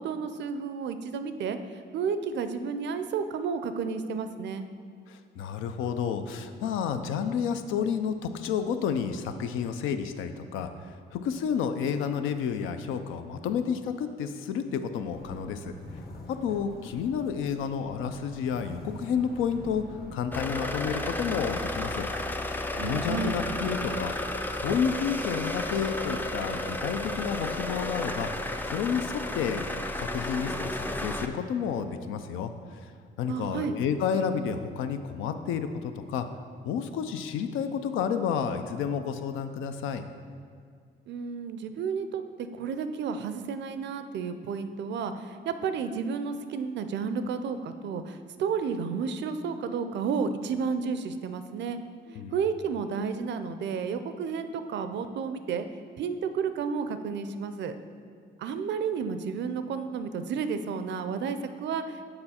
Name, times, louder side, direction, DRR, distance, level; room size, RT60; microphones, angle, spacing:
voice 1, 0.0-4.7 22.7-23.4 33.3-33.7 41.1-51.8 52.3-55.7 56.0-57.8 58.4-62.1, right 6 dB, 65° right, 10 dB, 0.4 m, -32 dB
voice 2, 5.1-15.7 16.3-22.1 22.5-24.1 24.6-28.3 28.7-29.7 30.0-32.5 33.2-36.3 36.6-40.0 52.1-52.3, left 7 dB, 90° left, 9 dB, 0.4 m, -30 dB
sound 1, 15.1-20.2, left 1 dB, 50° left, 1.1 m, -45 dB
sound 2, 20.3-31.3, left 1 dB, 10° left, 0.4 m, -32 dB
6.7 x 4.3 x 4.2 m, 2.2 s
cardioid pair, 90°, 20 cm